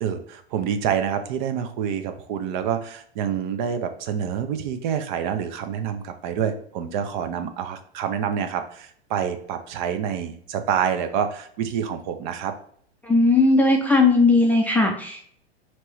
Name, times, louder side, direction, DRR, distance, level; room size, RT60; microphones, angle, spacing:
voice 1, 0.0-12.5, right 8 dB, 50° right, 8 dB, 0.6 m, -27 dB
voice 2, 13.0-15.2, left 3 dB, 5° left, 0 dB, 0.4 m, -18 dB
4.4 x 3.0 x 3.1 m, 0.62 s
hypercardioid pair, 105°, 32 cm